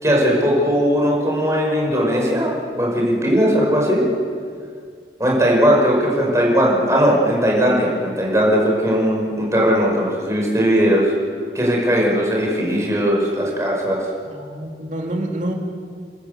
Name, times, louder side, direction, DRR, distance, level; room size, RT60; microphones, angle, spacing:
voice 1, 0.0-4.0 5.2-11.1 11.5-14.0, equal, 15° right, -2 dB, 5.5 m, -18 dB
voice 2, 14.2-15.5, right 1 dB, 45° right, 0 dB, 3.0 m, -27 dB
30.0 x 13.0 x 8.0 m, 2.2 s
head